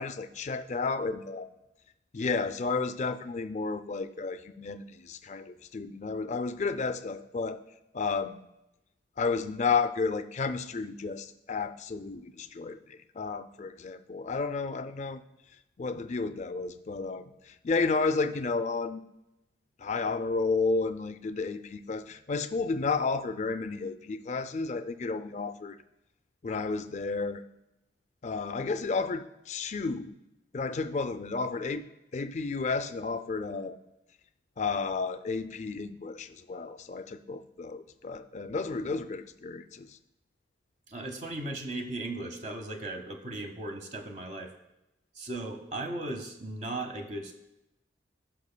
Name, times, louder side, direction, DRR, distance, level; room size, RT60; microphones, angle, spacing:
voice 1, 0.0-1.5 2.1-7.6 7.9-8.4 9.2-15.2 15.8-19.0 19.8-25.8 26.4-27.4 28.2-30.1 30.5-31.8 32.1-33.8 34.6-40.0, left 4 dB, 40° left, 11 dB, 0.4 m, -32 dB
voice 2, 40.9-44.5 45.2-47.3, right 2 dB, 40° right, 5 dB, 0.9 m, -37 dB
15.5 x 5.8 x 2.2 m, 0.91 s
head